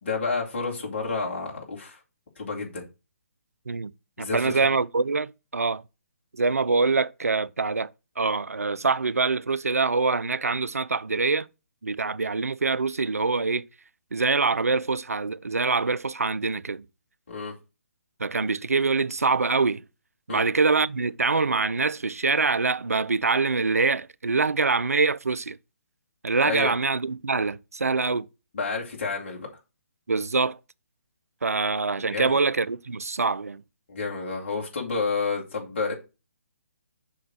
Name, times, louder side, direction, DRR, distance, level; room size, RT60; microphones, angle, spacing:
voice 1, 0.0-2.0 2.4-2.8 4.2-4.5 17.3-17.5 20.3-20.4 26.4-26.7 28.5-29.5 32.0-32.4 33.9-35.9, left 4 dB, 50° left, 2.3 m, -30 dB
voice 2, 4.2-5.8 6.3-11.5 11.8-13.6 14.1-16.8 18.2-19.8 20.3-25.6 26.2-28.3 30.1-30.6 31.4-33.6, right 4 dB, 80° right, 0.4 m, -24 dB
6.1 x 3.9 x 6.2 m
figure-of-eight pair, 135°, 8 cm